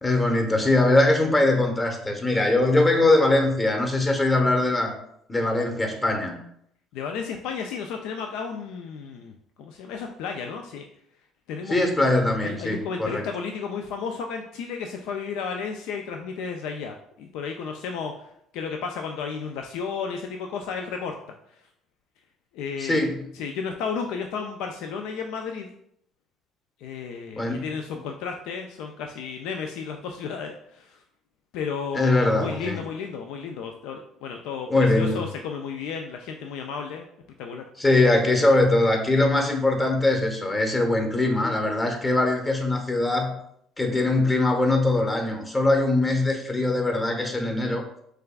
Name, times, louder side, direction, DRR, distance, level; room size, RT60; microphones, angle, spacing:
voice 1, 0.0-4.9 5.3-6.4 11.7-13.2 22.8-23.2 27.4-27.7 31.9-32.8 34.7-35.2 37.8-43.3 43.8-47.8, left 2 dB, 25° left, 3 dB, 1.0 m, -22 dB
voice 2, 6.9-9.3 9.6-10.8 11.5-12.1 12.4-21.1 22.5-23.0 23.4-25.7 26.8-31.0 31.5-34.7 35.0-37.1 37.4-37.6, left 6 dB, 75° left, 4 dB, 0.3 m, -33 dB
6.3 x 2.4 x 2.3 m, 0.72 s
hypercardioid pair, 70°, 0 cm